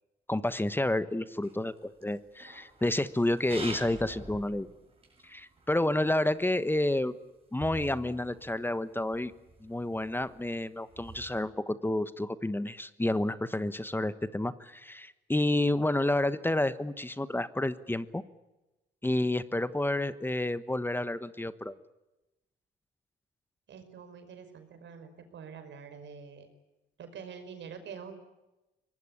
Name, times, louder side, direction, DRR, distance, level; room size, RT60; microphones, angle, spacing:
voice 1, 0.3-4.7 5.2-7.1 7.5-9.3 9.6-18.2 19.0-21.7, left 1 dB, 10° left, 14 dB, 1.2 m, -30 dB
sound 1, 1.4-6.1 6.7-6.8 7.0-7.1 7.6-11.4, right 3 dB, 30° right, 7.8 m, -46 dB
voice 2, 23.7-26.5 27.0-28.2, right 6 dB, 65° right, 7 dB, 5.3 m, -46 dB
24.0 x 20.0 x 9.8 m, 1.0 s
cardioid pair, 90°, 20 cm